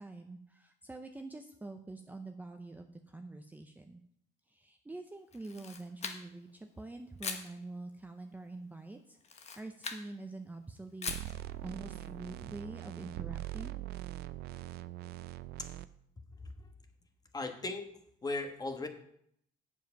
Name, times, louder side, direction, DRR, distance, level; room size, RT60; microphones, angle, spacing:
voice 1, 0.0-4.0 4.5-11.1 11.6-13.8, right 2 dB, 10° right, 5 dB, 0.7 m, -46 dB
Camera, 5.3-6.5 7.2-7.5 9.2-10.1 11.0-11.4, left 5 dB, 40° left, 1.1 m, -40 dB
sound 1, 11.1-15.9, right 15 dB, 75° right, 0.5 m, -42 dB
voice 2, 17.3-17.9 18.2-18.9, left 2 dB, 25° left, 6 dB, 1.3 m, -37 dB
7.7 x 7.3 x 5.8 m, 0.70 s
cardioid pair, 110°, 17 cm